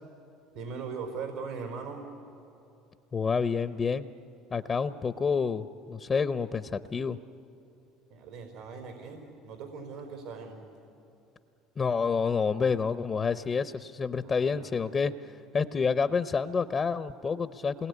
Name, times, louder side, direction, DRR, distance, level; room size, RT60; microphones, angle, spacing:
voice 1, 0.5-2.1 8.1-10.6 14.2-15.1, right 5 dB, 85° right, 3 dB, 4.4 m, -40 dB
voice 2, 3.1-4.1 4.5-7.2 11.8-15.1 15.5-17.9, left 5 dB, 30° left, 13 dB, 0.8 m, -28 dB
27.5 x 21.0 x 9.6 m, 2.7 s
supercardioid pair, 85°, 0 cm